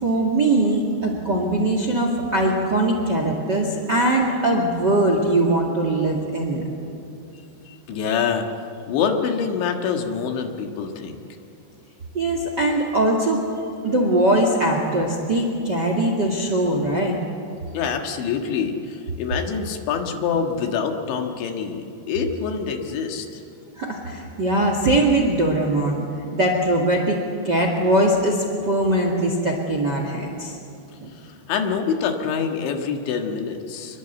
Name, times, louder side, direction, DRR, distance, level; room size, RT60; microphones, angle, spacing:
voice 1, 0.0-6.6 12.1-13.4 13.8-17.2 23.7-26.0 26.3-27.2 27.4-30.5 31.0-31.1, right 1 dB, 40° right, 2 dB, 1.6 m, -21 dB
voice 2, 7.7-8.5 8.9-11.2 17.7-23.4 31.2-34.0, left 6 dB, 80° left, 4 dB, 4.0 m, -26 dB
25.5 x 22.0 x 8.1 m, 2.7 s
omnidirectional pair, 5.3 m